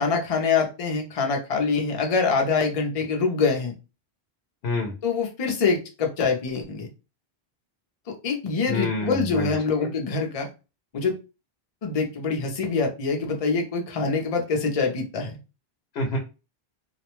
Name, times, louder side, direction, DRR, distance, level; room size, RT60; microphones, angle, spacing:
voice 1, 0.0-3.7 5.0-6.9 8.1-10.5 10.9-11.2 11.8-15.4, left 4 dB, 45° left, 2 dB, 0.6 m, -25 dB
voice 2, 8.7-9.9 15.9-16.2, left 3 dB, 75° left, 2 dB, 0.8 m, -28 dB
2.4 x 2.1 x 3.0 m, 0.30 s
omnidirectional pair, 1.1 m